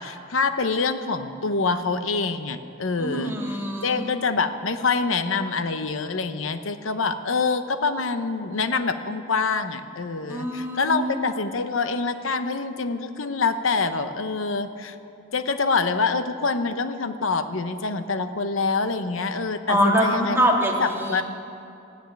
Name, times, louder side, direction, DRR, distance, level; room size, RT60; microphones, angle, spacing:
voice 1, 0.0-3.3 3.8-14.9 15.3-20.4 20.8-21.2, left 4 dB, 70° left, 10 dB, 0.9 m, -26 dB
voice 2, 3.0-4.0 10.3-11.2 19.7-21.2, equal, 10° right, -1 dB, 2.2 m, -24 dB
15.0 x 10.5 x 9.1 m, 2.7 s
head